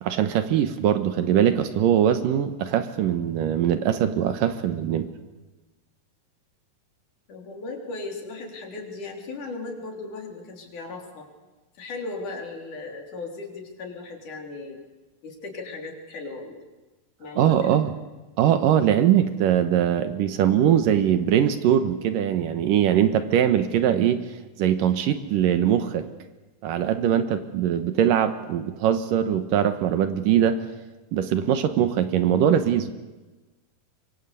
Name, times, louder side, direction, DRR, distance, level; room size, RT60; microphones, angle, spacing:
voice 1, 0.0-5.1 17.4-17.9 18.4-24.2 24.6-26.1 26.6-30.6 31.1-32.9, right 9 dB, 75° right, 10 dB, 2.7 m, -21 dB
voice 2, 7.3-11.3 11.8-14.8 15.2-16.6 17.2-17.7, left 3 dB, 60° left, 2 dB, 5.0 m, -37 dB
24.5 x 24.0 x 8.4 m, 1.2 s
omnidirectional pair, 4.2 m